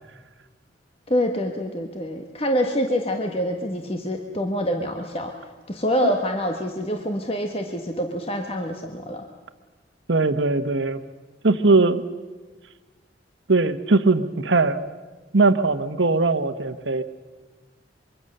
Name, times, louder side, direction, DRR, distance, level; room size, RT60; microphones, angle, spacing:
voice 1, 1.1-5.3 5.7-9.2, equal, 30° left, 4 dB, 1.5 m, -26 dB
voice 2, 10.1-11.0 11.4-12.0 13.5-14.8 15.3-17.0, right 3 dB, 80° right, 10 dB, 1.2 m, -20 dB
24.5 x 23.5 x 6.7 m, 1.3 s
head